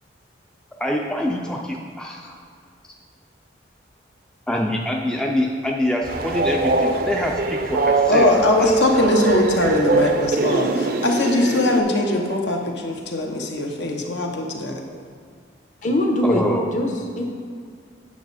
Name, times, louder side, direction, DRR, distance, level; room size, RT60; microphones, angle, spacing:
voice 1, 0.8-2.4 4.5-8.3 8.6-8.7 16.2-16.7, left 1 dB, 5° left, -1 dB, 0.4 m, -25 dB
Train, 6.0-11.8, right 3 dB, 50° right, 0.5 m, -22 dB
voice 2, 8.1-14.7, left 2 dB, 65° left, 1 dB, 1.0 m, -21 dB
voice 3, 15.8-16.4 16.7-17.2, left 1 dB, 40° left, 1 dB, 1.0 m, -21 dB
9.1 x 6.1 x 4.2 m, 2.1 s
head